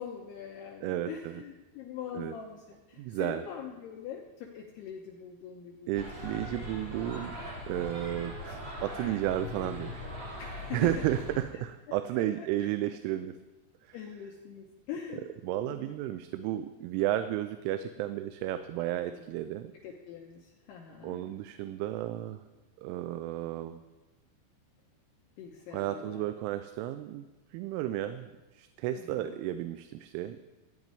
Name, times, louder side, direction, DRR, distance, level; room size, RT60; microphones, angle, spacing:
voice 1, 0.0-6.0 10.4-10.9 12.3-12.5 13.9-15.2 15.6-15.9 18.8-19.3 19.8-21.3 25.4-26.2 28.9-29.4, left 8 dB, 75° left, 0 dB, 2.5 m, -43 dB
voice 2, 0.8-1.4 2.1-2.4 3.0-3.4 5.9-10.4 10.7-13.4 13.8-14.0 15.4-19.7 21.0-22.4 22.8-23.8 25.7-27.3 27.5-30.4, right 13 dB, 85° right, 10 dB, 3.0 m, -33 dB
sound 1, 5.9-11.4, left 1 dB, 30° right, 2.5 m, -40 dB
14.5 x 5.2 x 9.5 m, 1.2 s
omnidirectional pair, 5.6 m